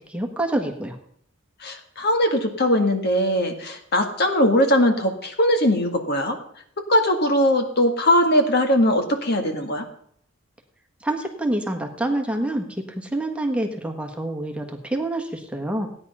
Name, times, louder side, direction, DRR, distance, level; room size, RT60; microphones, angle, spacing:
voice 1, 0.1-1.0 11.0-15.9, right 1 dB, 5° right, 3 dB, 1.4 m, -27 dB
voice 2, 1.6-6.4 6.8-9.9, left 1 dB, 55° left, 5 dB, 1.8 m, -20 dB
16.0 x 9.9 x 5.5 m, 0.67 s
head